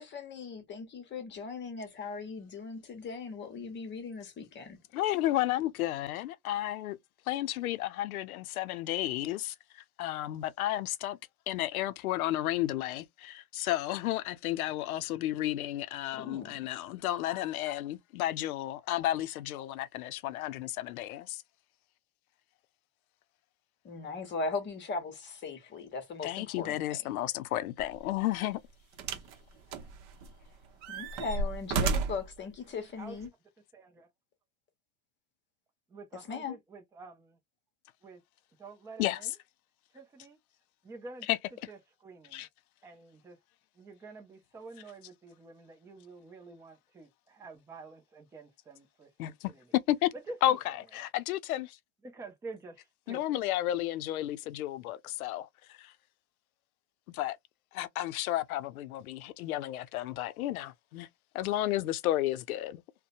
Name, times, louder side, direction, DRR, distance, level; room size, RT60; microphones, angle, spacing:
voice 1, 0.0-4.8 16.2-16.5 23.8-27.1 30.9-33.3 36.3-36.6, left 4 dB, 25° left, 0.9 m, -39 dB
voice 2, 4.9-7.0 7.3-11.2 11.5-21.4 26.2-28.6 39.0-39.2 41.3-41.4 42.3-42.5 49.2-50.1 50.4-51.8 53.1-55.9 57.1-57.4 57.7-61.1 61.3-62.8, left 14 dB, 85° left, 0.5 m, -32 dB
sound 1, 27.8-28.0 29.0-29.3 29.7-30.4 30.8-32.3 33.2-33.3, right 4 dB, 45° right, 0.8 m, -32 dB
voice 3, 32.7-33.2 33.7-34.1 35.9-37.4 38.0-38.2 38.6-39.3 39.9-40.4 40.8-41.4 41.7-42.5 42.8-43.4 43.7-49.7 50.1-50.4 50.7-50.8 52.0-53.4, right 3 dB, 5° right, 0.4 m, -48 dB
2.7 x 2.1 x 2.5 m
supercardioid pair, 120°, 42 cm